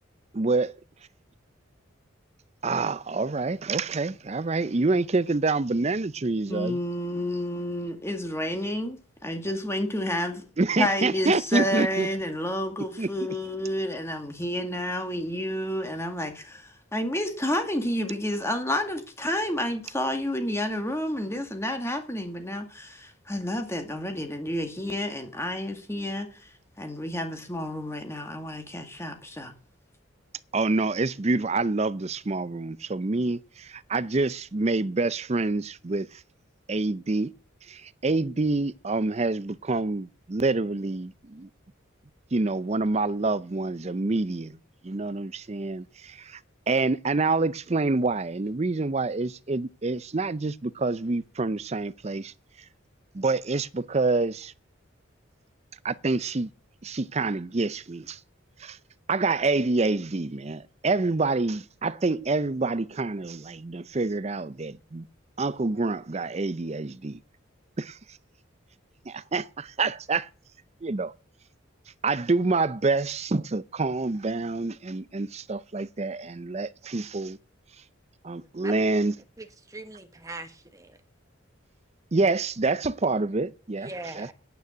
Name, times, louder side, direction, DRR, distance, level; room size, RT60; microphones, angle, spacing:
voice 1, 0.3-0.7 2.6-6.8 10.6-12.1 13.0-13.1 30.5-36.2 36.7-37.3 37.7-41.5 42.3-44.6 44.8-46.4 46.7-52.3 53.1-54.5 55.8-56.5 56.8-58.2 58.6-58.8 59.1-65.0 65.4-67.2 67.8-68.0 69.1-70.3 70.8-71.1 72.0-77.4 78.2-79.1 82.1-83.9 84.2-84.3, right 3 dB, 30° right, 0.5 m, -27 dB
voice 2, 6.5-10.4 10.8-26.3 26.8-29.5, left 1 dB, 15° left, 2.1 m, -30 dB
voice 3, 79.4-81.0 83.8-84.3, right 2 dB, 15° right, 1.4 m, -40 dB
9.2 x 9.2 x 8.4 m
head